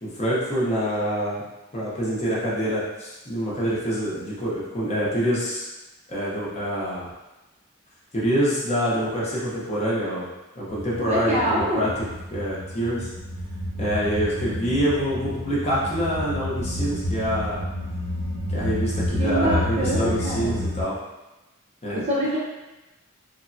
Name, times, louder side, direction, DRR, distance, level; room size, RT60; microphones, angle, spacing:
voice 1, 0.0-1.4 1.7-5.6 6.1-7.1 8.1-10.3 10.6-13.1 13.8-17.6 18.5-21.0 21.8-22.0, equal, 30° left, -7 dB, 0.7 m, -26 dB
sound 1, 10.7-20.8, left 1 dB, 85° right, 0.7 m, -30 dB
voice 2, 11.0-11.9 19.2-20.5 21.9-22.4, right 1 dB, 30° right, -5 dB, 0.5 m, -25 dB
3.3 x 2.1 x 2.5 m, 1.0 s
head